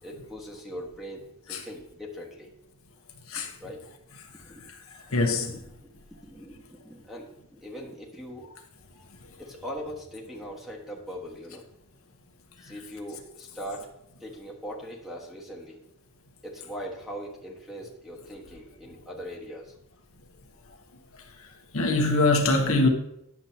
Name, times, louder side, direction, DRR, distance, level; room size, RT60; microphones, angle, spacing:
voice 1, 0.0-2.5 3.3-3.9 4.4-4.7 5.1-5.2 5.5-8.5 9.4-11.6 12.6-13.9 14.2-15.8 16.4-19.7, equal, ahead, 1.4 m, -41 dB
voice 2, 5.1-5.6 21.4-21.5 21.7-22.9, left 2 dB, 70° left, 1.0 m, -23 dB
10.5 x 7.3 x 2.8 m
head